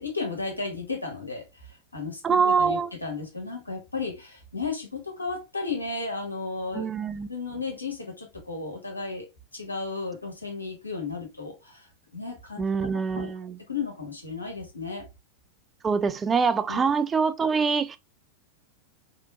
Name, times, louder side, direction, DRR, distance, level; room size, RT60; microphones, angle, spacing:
voice 1, 0.0-6.9 7.3-9.3 9.5-11.9 12.1-12.6 13.1-13.3 13.7-15.0 16.7-16.9, left 4 dB, 85° left, 1.1 m, -34 dB
voice 2, 2.2-2.9 6.7-7.3 12.6-13.6 15.8-18.0, right 5 dB, 20° right, 0.3 m, -24 dB
3.5 x 2.9 x 2.4 m
figure-of-eight pair, 90°, 0 cm